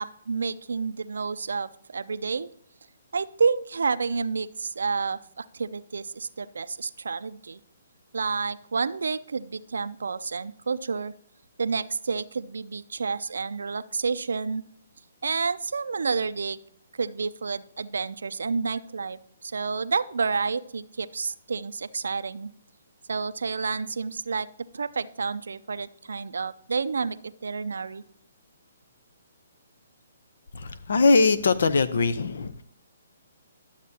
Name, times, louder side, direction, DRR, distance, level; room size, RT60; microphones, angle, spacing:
voice 1, 0.0-2.5 3.1-7.6 8.1-11.1 11.6-14.6 15.2-16.6 17.0-22.5 23.1-24.5 24.7-28.0, right 5 dB, 80° right, 15 dB, 0.5 m, -29 dB
voice 2, 30.5-32.6, left 3 dB, 70° left, 13 dB, 0.8 m, -21 dB
12.0 x 7.3 x 2.8 m, 0.67 s
hypercardioid pair, 145°, 0 cm